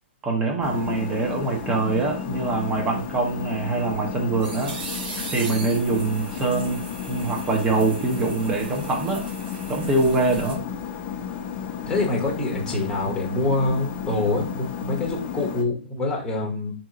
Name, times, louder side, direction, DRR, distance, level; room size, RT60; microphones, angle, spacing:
voice 1, 0.2-4.8 5.3-6.8 7.1-9.3 9.7-10.6, right 3 dB, 15° right, 1 dB, 0.9 m, -24 dB
sound 1, 0.6-15.6, left 7 dB, 30° left, 0.7 m, -33 dB
sound 2, 3.9-10.5, right 3 dB, 55° right, 1.2 m, -39 dB
voice 2, 11.9-16.7, left 2 dB, 10° left, -2 dB, 1.0 m, -25 dB
3.7 x 2.9 x 3.7 m, 0.36 s
hypercardioid pair, 150°, 6 cm